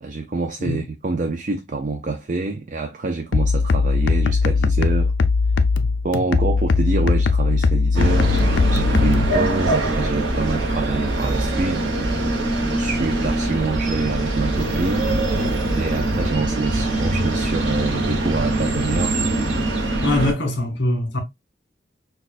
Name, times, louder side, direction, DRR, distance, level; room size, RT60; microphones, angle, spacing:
voice 1, 0.0-5.1 6.0-11.8 12.1-15.0 15.7-19.2, right 3 dB, 40° right, 0.4 m, -26 dB
sound 1, 3.3-9.3, left 4 dB, 80° left, 0.4 m, -19 dB
sound 2, 7.9-20.3, right 2 dB, 90° right, 1.1 m, -22 dB
voice 2, 20.0-21.2, left 1 dB, 65° left, 1.7 m, -22 dB
6.1 x 2.4 x 2.4 m
head